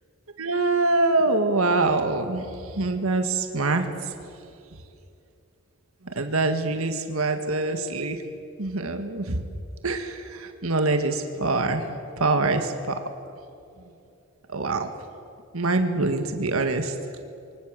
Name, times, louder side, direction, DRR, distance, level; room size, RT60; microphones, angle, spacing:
voice 1, 0.4-4.1 6.0-8.2 8.6-9.4 9.8-11.9 12.2-13.0 14.5-14.9 15.5-16.9, right 3 dB, 85° right, 6 dB, 1.8 m, -24 dB
28.5 x 24.0 x 7.6 m, 2.6 s
head